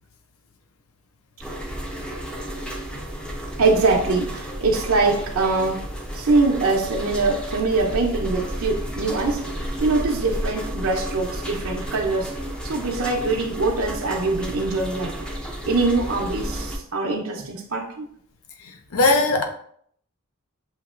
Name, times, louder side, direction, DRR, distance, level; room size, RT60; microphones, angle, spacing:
sound 1, 1.4-16.8, equal, 5° left, 0.4 m, -32 dB
voice 1, 3.6-5.8 6.1-9.4 9.8-12.3 12.6-15.1 15.7-18.1, right 3 dB, 80° right, 0 dB, 0.7 m, -23 dB
voice 2, 18.6-19.4, left 2 dB, 75° left, 4 dB, 0.5 m, -20 dB
7.2 x 2.9 x 2.4 m, 0.65 s
head